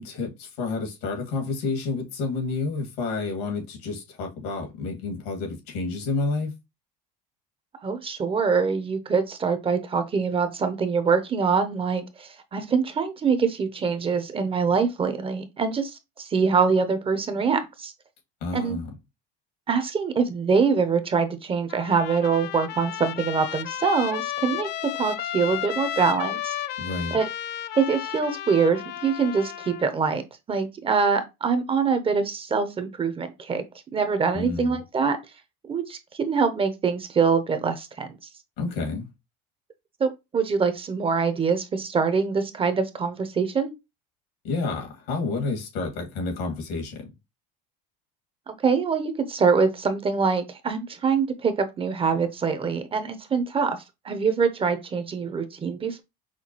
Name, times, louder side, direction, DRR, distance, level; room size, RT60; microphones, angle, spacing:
voice 1, 0.0-6.5 18.4-18.9 26.8-27.2 34.3-34.8 38.6-39.1 44.4-47.1, left 3 dB, 75° left, 1.9 m, -30 dB
voice 2, 7.8-17.9 18.5-18.8 19.7-24.7 25.0-26.6 27.1-27.2 27.8-30.2 30.5-33.6 33.9-35.2 35.7-38.1 40.0-43.7 48.5-53.8 54.0-56.0, right 5 dB, 25° right, 0.6 m, -24 dB
Trumpet, 21.7-29.9, left 11 dB, 55° left, 0.5 m, -33 dB
5.7 x 2.2 x 2.9 m
supercardioid pair, 105°, 21 cm